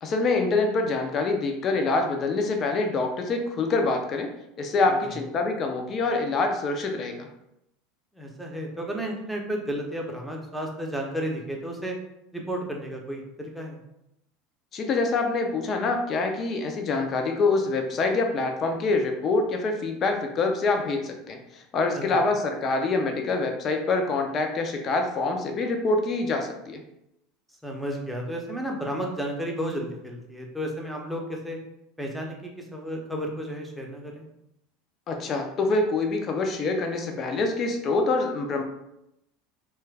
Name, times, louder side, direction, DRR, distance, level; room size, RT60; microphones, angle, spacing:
voice 1, 0.0-4.3 4.6-7.3 14.7-26.8 35.1-38.6, left 3 dB, 35° left, 4 dB, 0.5 m, -25 dB
voice 2, 8.1-12.0 12.3-13.8 21.9-22.2 27.6-31.6 32.0-34.3, equal, 5° right, 0 dB, 0.7 m, -33 dB
3.1 x 2.2 x 3.3 m, 0.83 s
figure-of-eight pair, 75°, 0 cm